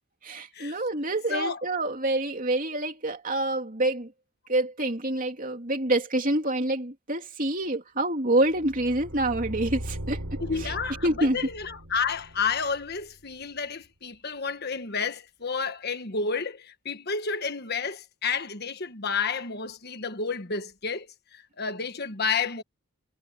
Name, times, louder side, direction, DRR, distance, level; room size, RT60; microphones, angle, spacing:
voice 1, 0.2-4.1 4.5-10.2 10.6-10.7 11.0-11.4, right 1 dB, 40° right, 3.0 m, -27 dB
voice 2, 1.3-1.6 10.4-22.6, left 5 dB, 50° left, 1.4 m, -31 dB
sound 1, 8.5-13.4, equal, 85° right, 4.6 m, -39 dB
head